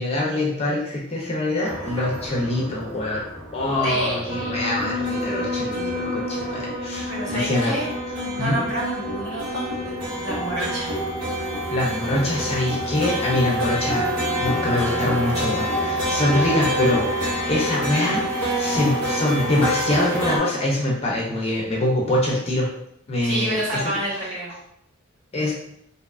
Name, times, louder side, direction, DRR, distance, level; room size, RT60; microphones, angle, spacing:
voice 1, 0.0-3.2 3.5-7.8 8.4-8.6 11.7-14.1 14.4-22.7 23.1-23.9 25.3-25.5, left 1 dB, 30° left, -3 dB, 0.4 m, -24 dB
sound 1, 1.6-20.4, right 1 dB, 90° right, 0.9 m, -28 dB
voice 2, 3.8-4.7 7.1-7.9 8.2-9.9 10.2-11.0 23.2-24.5, right 1 dB, 60° right, -7 dB, 1.1 m, -29 dB
sound 2, 4.3-13.0, left 2 dB, 40° right, 0.7 m, -32 dB
sound 3, 9.1-17.6, equal, 5° left, 0.9 m, -37 dB
2.7 x 2.2 x 2.3 m, 0.77 s
head